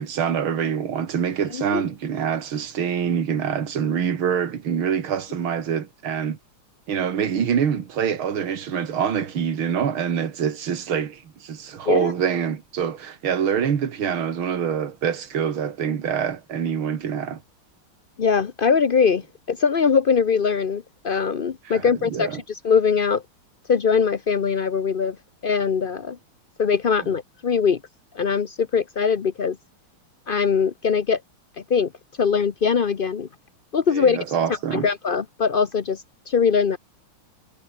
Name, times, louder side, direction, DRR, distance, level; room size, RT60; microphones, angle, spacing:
voice 1, 0.0-6.4 6.9-17.4 21.7-21.9 22.1-22.4 33.9-34.9, right 8 dB, 75° right, 2.8 m, -25 dB
voice 2, 18.2-23.2 23.7-25.2 25.4-26.2 26.6-27.8 28.1-29.6 30.3-31.2 31.7-31.9 32.2-33.3 33.7-34.2 34.7-36.8, left 6 dB, 80° left, 0.4 m, -21 dB
omnidirectional pair, 2.3 m